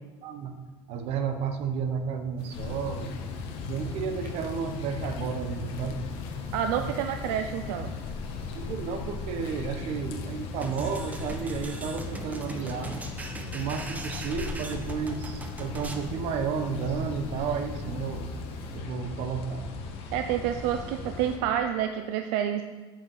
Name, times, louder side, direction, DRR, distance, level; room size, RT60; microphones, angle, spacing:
voice 1, 0.2-0.6 0.9-3.1 3.7-6.0 6.8-6.9 8.5-12.9 13.5-18.3 18.7-19.7, right 6 dB, 60° right, 7 dB, 1.3 m, -32 dB
sound 1, 2.4-18.8, left 6 dB, 90° left, 1.1 m, -46 dB
sound 2, 2.5-21.4, left 4 dB, 60° left, 1.6 m, -38 dB
voice 2, 6.5-7.9 20.1-22.6, right 9 dB, 80° right, 7 dB, 0.6 m, -28 dB
sound 3, 10.6-16.1, right 2 dB, 15° right, 1.1 m, -40 dB
8.0 x 7.2 x 7.8 m, 1.3 s
cardioid pair, 130°, 11 cm